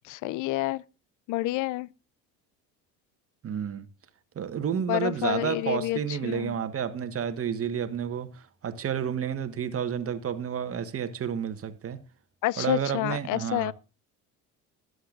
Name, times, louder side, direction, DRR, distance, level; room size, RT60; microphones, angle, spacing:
voice 1, 0.1-0.8 1.3-1.9 4.9-6.5 12.4-13.7, left 18 dB, 55° left, 0.5 m, -29 dB
voice 2, 3.4-3.9 4.3-12.0 12.6-13.7, right 8 dB, 40° right, 1.5 m, -30 dB
20.5 x 8.0 x 2.5 m
supercardioid pair, 85°, 36 cm